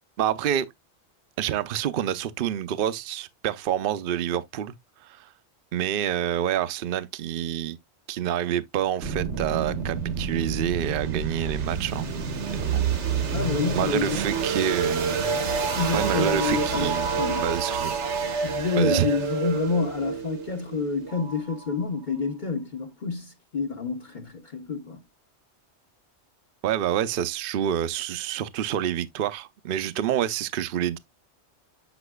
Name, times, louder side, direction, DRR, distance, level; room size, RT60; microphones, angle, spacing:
voice 1, 0.2-0.7 1.4-4.7 5.0-5.3 5.7-7.8 8.1-12.1 12.5-12.8 13.7-15.3 15.9-17.1 17.4-17.9 18.8-19.1 26.6-31.0, right 10 dB, 60° right, 0.7 m, -27 dB
sound 1, 9.0-21.8, right 5 dB, 85° right, 1.4 m, -28 dB
voice 2, 13.3-14.2 15.8-17.4 18.4-25.0, left 4 dB, 45° left, 1.1 m, -28 dB
8.0 x 5.8 x 2.2 m
omnidirectional pair, 1.2 m